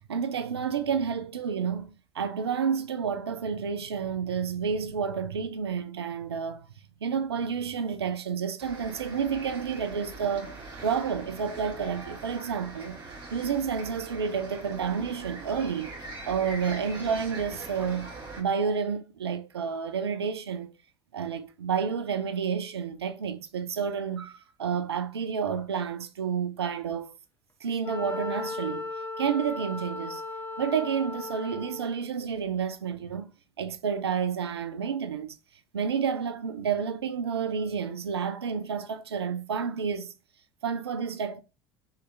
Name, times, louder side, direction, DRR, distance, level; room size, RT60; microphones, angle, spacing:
voice 1, 0.0-6.7 7.0-10.6 10.8-13.0 13.3-15.9 16.3-18.1 18.4-20.7 21.1-27.1 27.6-28.9 29.2-30.2 30.6-33.3 33.6-35.4 35.7-40.1 40.6-41.4, right 6 dB, 80° right, 0.4 m, -30 dB
sound 1, 8.6-18.4, right 2 dB, 35° right, 1.7 m, -42 dB
Wind instrument woodwind instrument, 27.8-32.0, left 3 dB, 20° left, 0.8 m, -36 dB
3.8 x 3.2 x 2.5 m
figure-of-eight pair, 65°, 13 cm